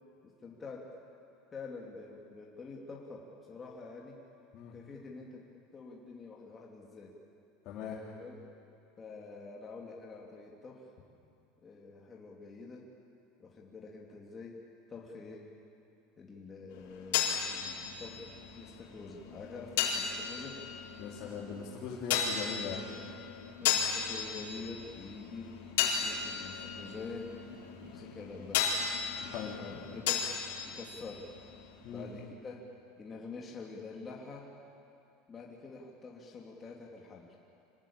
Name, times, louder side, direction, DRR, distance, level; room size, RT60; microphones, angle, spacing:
voice 1, 0.2-0.9 1.5-4.2 4.7-7.1 7.8-8.4 9.0-10.9 11.6-12.9 13.4-14.6 14.9-15.5 16.2-20.6 23.6-25.5 26.0-27.3 27.8-28.8 29.6-30.3 30.6-31.3 31.9-32.7 33.0-34.5 35.3-37.4, left 4 dB, 20° left, -2 dB, 2.5 m, -47 dB
voice 2, 7.6-8.0 21.0-22.8 29.3-29.6 31.8-32.1, left 6 dB, 45° left, -4 dB, 3.4 m, -40 dB
sound 1, 16.7-32.3, left 7 dB, 80° left, 4.2 m, -36 dB
26.0 x 19.0 x 8.8 m, 2.5 s
supercardioid pair, 150°, 0 cm